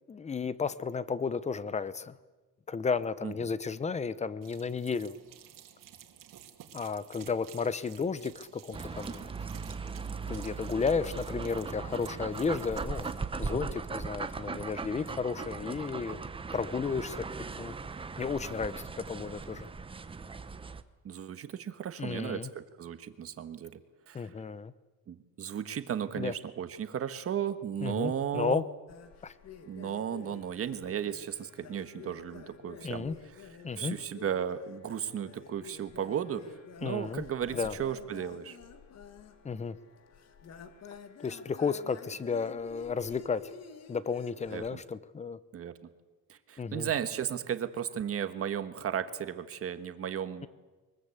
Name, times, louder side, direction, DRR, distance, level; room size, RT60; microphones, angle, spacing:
voice 1, 0.1-2.1 2.7-5.2 6.7-9.3 10.3-16.2 16.5-17.3 17.6-17.7 18.2-19.7 22.0-22.5 24.1-24.7 26.2-26.3 27.8-28.6 29.2-29.3 32.8-33.1 33.6-34.0 36.8-37.2 37.5-37.7 39.4-39.8 41.2-43.5 43.9-45.4 46.6-46.9, left 5 dB, 20° left, 17 dB, 0.7 m, -33 dB
sound 1, 4.4-13.2, right 10 dB, 55° right, 2.6 m, -53 dB
sound 2, 8.7-20.8, right 4 dB, 15° right, 0.8 m, -39 dB
voice 2, 21.0-23.8 24.1-24.3 25.1-28.6 29.7-33.1 33.8-36.5 36.8-38.6 44.5-44.8 45.5-45.9 46.3-50.5, right 9 dB, 35° right, 10 dB, 1.4 m, -35 dB
sound 3, 28.9-44.7, left 6 dB, 40° left, 1.7 m, -50 dB
23.5 x 21.5 x 8.4 m, 1.2 s
cardioid pair, 160°, 38 cm